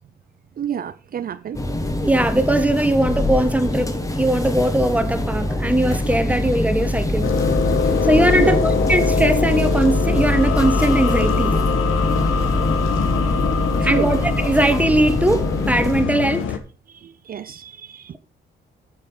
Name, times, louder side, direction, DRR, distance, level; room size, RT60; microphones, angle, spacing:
voice 1, 0.6-1.6 8.4-8.6 13.9-14.2 16.9-18.2, right 9 dB, 45° right, 0.6 m, -29 dB
sound 1, 1.5-16.0, left 1 dB, 15° left, 1.7 m, -23 dB
voice 2, 2.0-7.3 8.0-11.6 13.8-16.6, right 1 dB, 5° right, 1.3 m, -20 dB
sound 2, 7.2-16.6, left 7 dB, 85° left, 1.4 m, -23 dB
9.0 x 6.8 x 5.5 m
cardioid pair, 90°, 20 cm